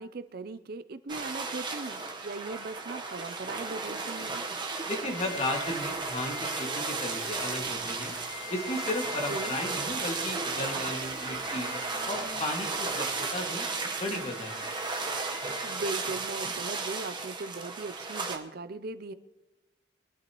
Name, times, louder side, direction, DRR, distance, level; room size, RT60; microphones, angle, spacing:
voice 1, 0.0-4.4 9.3-9.6 15.6-19.1, right 3 dB, 55° right, 12 dB, 0.5 m, -39 dB
sound 1, 1.1-18.4, right 4 dB, 25° right, 1.2 m, -34 dB
voice 2, 4.9-8.2 8.5-11.7 12.0-14.7, left 1 dB, 35° left, 1 dB, 2.1 m, -35 dB
sound 2, 5.0-16.1, left 7 dB, 80° left, 1.7 m, -46 dB
22.5 x 12.0 x 3.1 m, 0.96 s
head